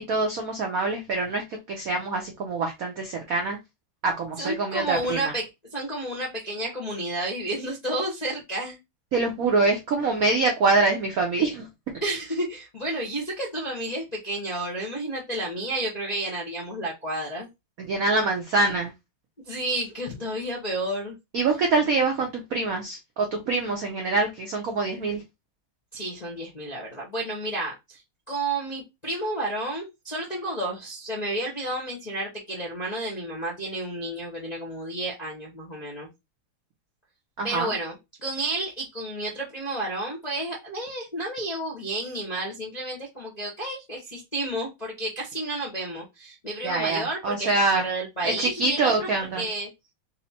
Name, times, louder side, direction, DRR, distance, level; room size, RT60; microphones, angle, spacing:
voice 1, 0.0-3.6 4.0-5.2 9.1-11.7 17.9-18.9 21.3-25.2 37.4-37.7 46.6-47.8 48.2-49.5, right 3 dB, 70° right, 0.8 m, -25 dB
voice 2, 4.4-8.8 12.0-17.5 19.4-21.2 21.8-21.9 25.9-28.0 28.3-36.1 37.4-49.7, right 1 dB, 35° left, 0.6 m, -31 dB
4.2 x 2.1 x 4.2 m
omnidirectional pair, 2.4 m